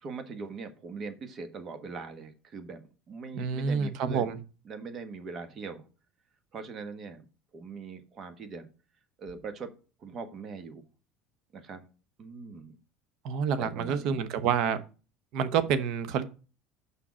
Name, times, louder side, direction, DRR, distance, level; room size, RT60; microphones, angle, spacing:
voice 1, 0.0-2.8 3.1-4.4 4.6-5.9 6.5-7.2 7.5-8.7 9.2-9.7 10.0-10.8 11.5-11.9 12.2-12.8 13.6-14.2, right 4 dB, 40° right, 1.3 m, -41 dB
voice 2, 3.3-4.4 13.2-14.8 15.3-16.2, right 7 dB, 60° right, 0.9 m, -28 dB
6.2 x 5.6 x 6.2 m
cardioid pair, 130°, 0 cm